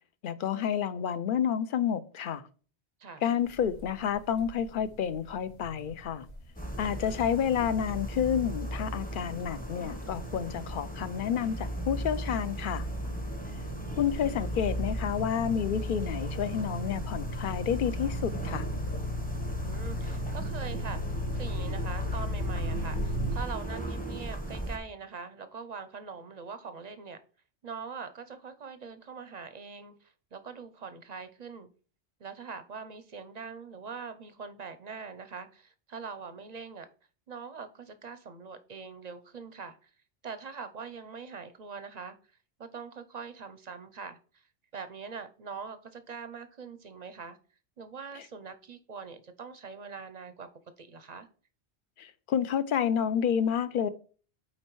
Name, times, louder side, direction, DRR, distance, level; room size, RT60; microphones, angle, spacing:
voice 1, 0.2-2.4 3.2-6.3 6.8-12.9 14.0-18.6 52.0-53.9, left 8 dB, 60° left, 0.6 m, -29 dB
sound 1, 3.4-17.6, right 1 dB, 40° left, 1.4 m, -48 dB
sound 2, 6.5-24.8, right 1 dB, 10° left, 1.0 m, -37 dB
voice 2, 6.9-7.2 13.5-13.9 19.6-27.2 27.6-31.7 32.2-36.9 37.3-39.9 40.2-42.2 42.6-44.4 44.7-47.4 47.8-50.5 50.8-51.3, right 5 dB, 50° right, 0.6 m, -43 dB
sound 3, 10.7-23.4, left 1 dB, 85° left, 1.8 m, -36 dB
8.7 x 4.3 x 3.1 m
omnidirectional pair, 1.1 m